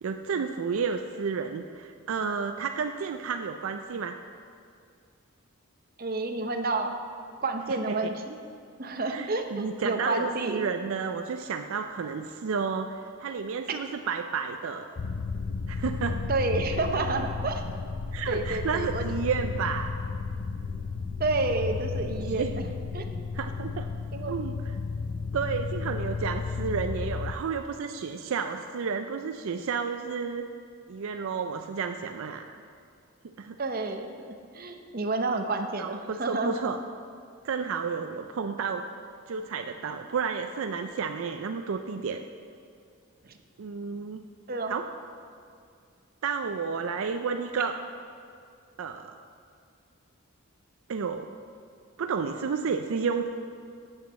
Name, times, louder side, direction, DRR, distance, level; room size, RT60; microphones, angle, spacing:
voice 1, 0.0-4.2 7.9-8.0 9.1-14.9 15.7-16.2 18.1-20.0 22.3-22.6 23.3-23.9 24.3-24.5 25.3-30.4 30.9-32.5 33.4-33.6 35.8-36.8 37.4-38.8 39.3-42.2 43.6-44.2 44.7-44.9 46.2-47.8 48.8-49.2 50.9-51.3 52.0-53.3, right 5 dB, 70° right, 6 dB, 0.4 m, -31 dB
voice 2, 6.0-6.9 7.4-8.4 8.8-10.6 13.7-13.8 16.1-17.6 18.3-19.1 21.2-22.5 22.9-23.1 24.1-24.3 33.6-36.5 43.2-43.4 44.5-44.8, right 3 dB, 40° right, 5 dB, 0.7 m, -30 dB
sound 1, 15.0-27.3, left 4 dB, 55° left, 0.4 m, -33 dB
8.1 x 7.2 x 7.4 m, 2.3 s
head